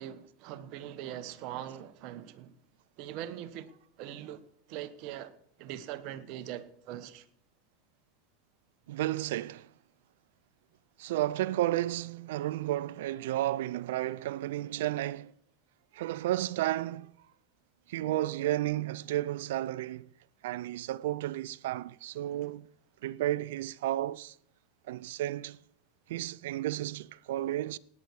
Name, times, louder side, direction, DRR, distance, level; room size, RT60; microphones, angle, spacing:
voice 1, 0.0-2.6 3.0-3.7 4.0-7.3, right 11 dB, 55° right, 1.2 m, -42 dB
voice 2, 8.9-9.7 11.0-15.3 15.9-17.1 17.9-20.1 20.4-22.7 23.0-24.3 24.9-25.6 26.1-27.8, right 14 dB, 75° right, 0.4 m, -32 dB
18.0 x 9.7 x 4.8 m
hypercardioid pair, 95°, 0 cm